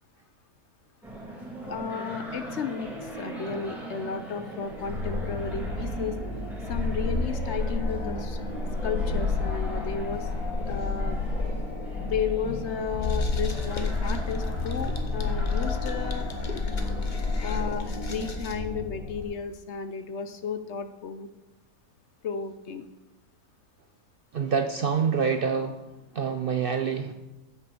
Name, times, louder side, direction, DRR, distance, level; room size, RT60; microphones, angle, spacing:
sound 1, 1.0-18.3, right 1 dB, ahead, 2.3 m, -40 dB
voice 1, 1.7-6.2 6.7-8.4 8.8-10.3 10.7-11.2 12.0-16.3 17.4-21.3 22.2-22.8, left 6 dB, 60° left, 9 dB, 0.9 m, -33 dB
sound 2, 4.7-19.2, left 3 dB, 75° left, 1.6 m, -30 dB
sound 3, 13.0-18.6, left 3 dB, 35° left, 1.0 m, -43 dB
voice 2, 24.3-25.8 26.1-27.1, right 6 dB, 55° right, 7 dB, 0.6 m, -26 dB
9.3 x 6.2 x 6.9 m, 0.98 s
omnidirectional pair, 1.5 m